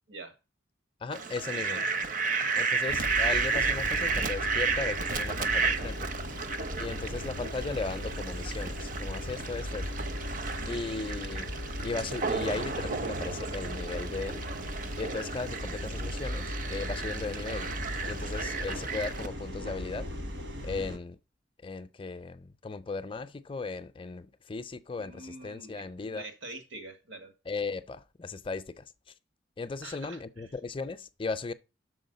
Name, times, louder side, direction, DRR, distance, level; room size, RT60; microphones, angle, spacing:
voice 1, 1.0-1.8 2.6-6.1 6.8-9.9 10.7-11.5 11.8-14.4 15.0-17.7 18.0-20.1 20.6-21.2 21.6-26.3 27.5-28.8 29.6-31.5, left 4 dB, 25° left, 0.5 m, -37 dB
Fowl, 1.1-19.3, right 4 dB, 45° right, 0.7 m, -33 dB
sound 1, 2.9-21.0, left 1 dB, 70° right, 1.4 m, -38 dB
voice 2, 10.6-10.9 25.0-27.3 29.8-30.5, right 2 dB, 85° right, 1.8 m, -45 dB
6.3 x 4.6 x 6.5 m
head